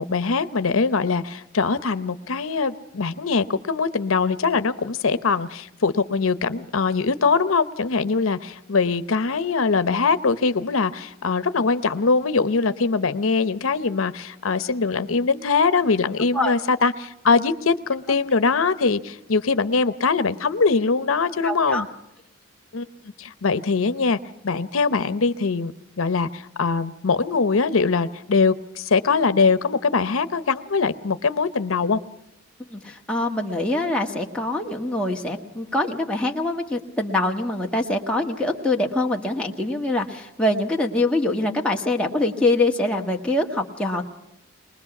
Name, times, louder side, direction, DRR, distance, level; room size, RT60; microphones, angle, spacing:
voice 1, 0.0-21.9 22.7-22.8 23.2-24.2 24.4-25.7 26.0-32.0, left 4 dB, 90° left, 12 dB, 0.8 m, -22 dB
voice 2, 21.4-21.8 32.7-44.0, left 2 dB, 5° left, -1 dB, 1.5 m, -24 dB
23.5 x 20.0 x 5.9 m, 0.86 s
head